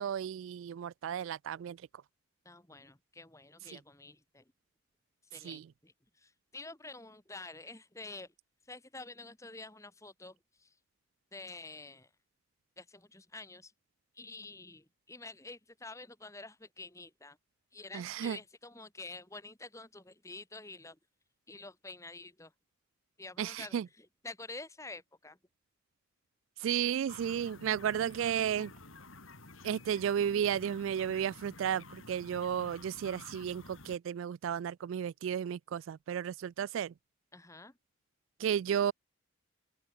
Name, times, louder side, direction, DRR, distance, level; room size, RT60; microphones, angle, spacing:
voice 1, 0.0-1.8 5.4-5.6 17.9-18.4 23.4-23.9 26.6-28.7 29.6-36.9 38.4-38.9, right 9 dB, 75° right, 0.3 m, -33 dB
voice 2, 2.5-4.4 5.3-5.9 6.2-8.3 8.7-10.7 11.3-12.1 12.8-13.7 14.2-17.4 17.7-21.0 21.5-22.5 23.2-25.4 37.3-37.7, left 3 dB, 15° left, 1.8 m, -48 dB
sound 1, 27.1-34.0, left 2 dB, 80° left, 5.1 m, -52 dB
open air
head